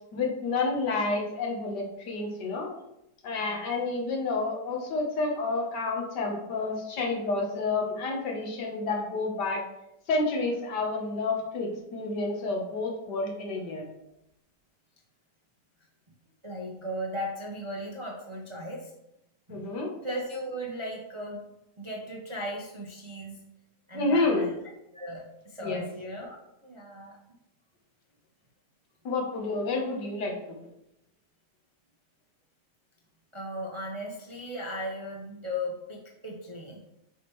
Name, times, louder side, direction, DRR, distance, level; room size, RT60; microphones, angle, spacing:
voice 1, 0.1-2.7 3.2-9.6 10.1-13.9 19.5-19.9 23.9-24.5 25.6-25.8 29.1-30.3, left 3 dB, 80° left, 1 dB, 1.8 m, -29 dB
voice 2, 16.4-18.9 19.5-19.7 20.0-21.4 21.8-23.4 23.9-24.6 24.9-27.2 33.3-36.8, equal, 30° right, -1 dB, 0.5 m, -37 dB
6.8 x 4.5 x 3.1 m, 0.84 s
omnidirectional pair, 1.8 m